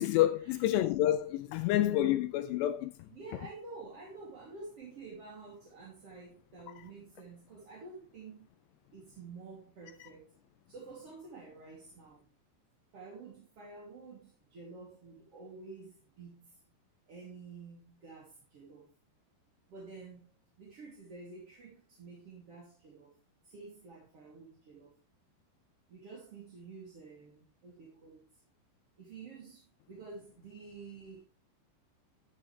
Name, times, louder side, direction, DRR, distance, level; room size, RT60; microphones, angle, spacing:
voice 1, 0.0-2.9, left 13 dB, 80° left, 2.5 m, -28 dB
voice 2, 3.1-8.5 8.9-10.3 10.7-12.2 12.9-16.6 17.1-18.9 19.7-20.3 20.6-23.1 23.4-24.9 25.9-28.3 29.0-31.3, right 4 dB, 35° right, 3.2 m, -50 dB
14.0 x 8.4 x 3.4 m
omnidirectional pair, 5.3 m